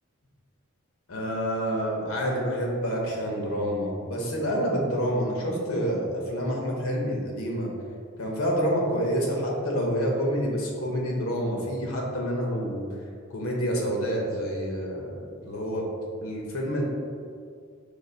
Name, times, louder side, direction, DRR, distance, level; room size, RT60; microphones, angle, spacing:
voice 1, 1.1-7.7 8.2-12.8 13.3-15.8 16.2-16.8, equal, 75° left, -1 dB, 0.9 m, -28 dB
5.0 x 2.4 x 4.0 m, 2.3 s
head